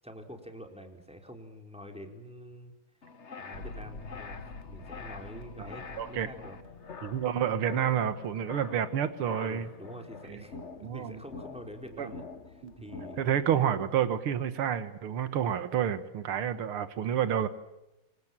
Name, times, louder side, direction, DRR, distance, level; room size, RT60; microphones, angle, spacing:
voice 1, 0.0-2.7 3.4-4.4 4.7-6.6 9.4-13.3, equal, 5° right, 4 dB, 4.4 m, -46 dB
sound 1, 3.0-13.9, left 4 dB, 35° left, 1.5 m, -46 dB
sound 2, 3.5-8.4, left 3 dB, 65° left, 4.9 m, -47 dB
voice 2, 6.0-6.3 7.0-9.7 10.3-10.4 10.8-11.2 12.0-12.1 12.6-12.7 13.2-17.5, right 9 dB, 80° right, 11 dB, 2.3 m, -29 dB
29.0 x 25.0 x 7.5 m, 0.93 s
omnidirectional pair, 2.4 m